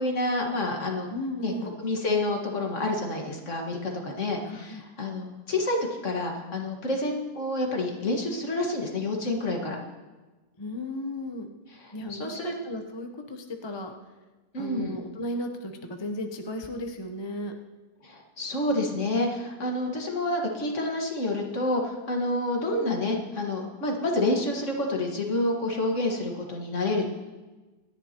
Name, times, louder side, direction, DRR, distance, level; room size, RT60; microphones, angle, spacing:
voice 1, 0.0-1.1 1.4-1.5 1.8-5.8 6.0-9.8 11.8-12.5 14.5-15.0 18.0-27.1, left 2 dB, 45° left, 1 dB, 2.0 m, -28 dB
voice 2, 1.1-1.7 4.4-4.8 10.6-11.5 11.9-13.9 14.6-17.5, left 1 dB, 25° left, 4 dB, 0.5 m, -35 dB
25.5 x 10.5 x 3.0 m, 1.2 s
omnidirectional pair, 1.9 m